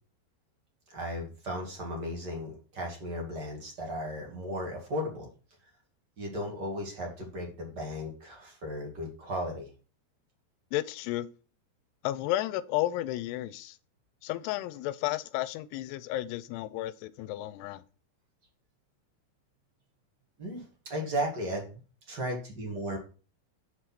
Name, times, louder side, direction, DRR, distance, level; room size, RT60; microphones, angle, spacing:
voice 1, 0.9-5.3 6.2-9.7 20.4-21.8 22.1-23.0, equal, 35° right, 1.8 m, -35 dB
voice 2, 10.7-11.3 12.0-13.8 14.2-17.8, left 15 dB, 85° left, 2.6 m, -32 dB
6.5 x 4.8 x 5.9 m
omnidirectional pair, 4.7 m